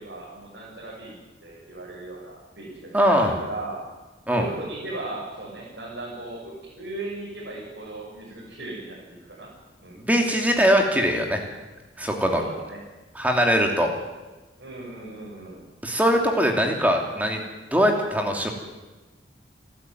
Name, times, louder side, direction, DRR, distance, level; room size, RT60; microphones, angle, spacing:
voice 1, 0.0-3.8 4.3-9.5 9.8-10.0 12.4-12.8 14.6-15.6, right 2 dB, 75° right, -6 dB, 7.2 m, -37 dB
voice 2, 2.9-3.3 4.3-4.5 10.1-11.4 12.0-12.4 13.1-13.9 15.8-17.4 17.7-18.5, equal, 10° right, 2 dB, 2.9 m, -21 dB
28.5 x 13.0 x 9.4 m, 1.2 s
head